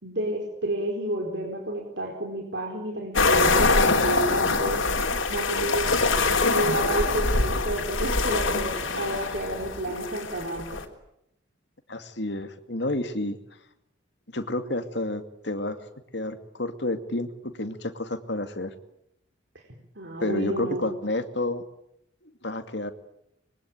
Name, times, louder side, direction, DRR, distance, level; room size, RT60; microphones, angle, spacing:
voice 1, 0.0-4.8 5.3-10.8 19.9-21.0, right 1 dB, 65° right, 1 dB, 4.5 m, -31 dB
sound 1, 3.1-10.8, left 3 dB, 85° left, 3.7 m, -24 dB
voice 2, 11.9-13.4 14.3-15.8 16.1-18.7 20.2-21.6 22.2-22.9, left 2 dB, 60° left, 8 dB, 2.4 m, -30 dB
26.0 x 23.0 x 9.1 m, 0.78 s
head